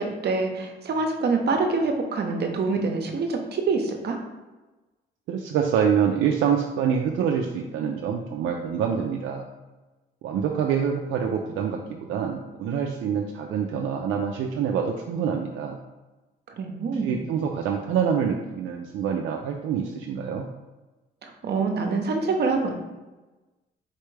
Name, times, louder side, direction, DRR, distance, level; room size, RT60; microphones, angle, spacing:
voice 1, 0.0-4.2 16.5-17.1 21.2-22.7, right 4 dB, 55° right, 4 dB, 0.8 m, -26 dB
voice 2, 5.3-9.5 10.2-15.8 17.0-20.5, right 7 dB, 80° right, 1 dB, 0.4 m, -26 dB
4.4 x 3.3 x 3.2 m, 1.2 s
cardioid pair, 90°, 20 cm